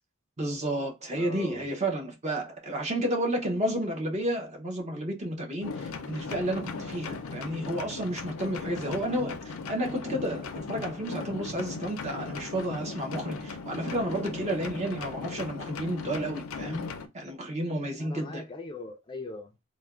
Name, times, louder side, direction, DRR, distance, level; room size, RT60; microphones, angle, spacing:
voice 1, 0.4-16.8 17.1-18.4, right 1 dB, 30° right, 0.6 m, -31 dB
voice 2, 1.2-1.7 8.7-9.3 18.0-19.6, left 2 dB, 20° left, 0.4 m, -42 dB
sound 1, 5.6-17.1, left 4 dB, 80° left, 0.4 m, -38 dB
3.2 x 2.1 x 2.3 m
head